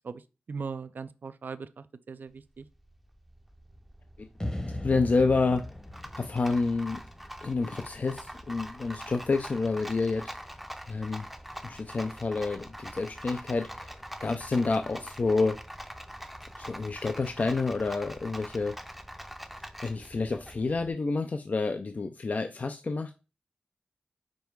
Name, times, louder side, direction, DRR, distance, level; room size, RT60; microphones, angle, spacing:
voice 1, 0.5-2.6, right 5 dB, 75° right, 0.4 m, -39 dB
Rattle, 2.3-20.9, equal, 5° right, 0.6 m, -44 dB
sound 1, 4.4-7.6, left 1 dB, 25° left, 1.0 m, -38 dB
voice 2, 4.6-5.7 6.1-7.0 7.4-10.5 10.9-11.3 11.6-15.6 16.6-18.8 19.8-23.1, left 3 dB, 55° left, 0.5 m, -29 dB
5.3 x 4.5 x 4.6 m
wide cardioid pair, 95°, 3 cm